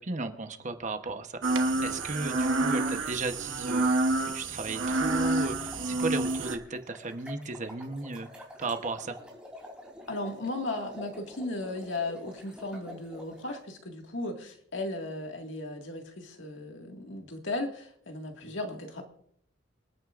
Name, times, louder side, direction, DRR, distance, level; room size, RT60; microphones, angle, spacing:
voice 1, 0.0-1.4 1.8-9.2 18.4-18.5, right 3 dB, 40° right, 7 dB, 1.0 m, -35 dB
sound 1, 1.4-6.6, right 2 dB, 85° right, 1.1 m, -28 dB
sound 2, 5.2-13.6, left 1 dB, 5° right, 3.3 m, -47 dB
voice 2, 10.1-19.0, left 2 dB, 80° left, 3 dB, 2.0 m, -36 dB
27.5 x 9.3 x 2.5 m, 0.66 s
head